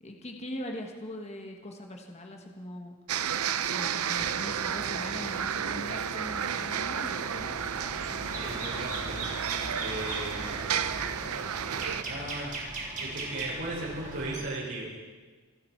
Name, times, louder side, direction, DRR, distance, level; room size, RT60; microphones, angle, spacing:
voice 1, 0.0-3.0 3.6-7.6, left 1 dB, 30° left, 2 dB, 1.4 m, -41 dB
sound 1, 3.1-12.0, right 8 dB, 85° right, 0.6 m, -32 dB
sound 2, 4.2-12.3, left 1 dB, 10° left, 0.8 m, -47 dB
sound 3, 7.2-14.4, right 2 dB, 35° right, 3.1 m, -39 dB
voice 2, 8.3-9.3 9.8-10.5 12.0-12.7 13.0-15.0, right 2 dB, 65° right, -5 dB, 6.4 m, -37 dB
26.0 x 11.5 x 4.6 m, 1.4 s
head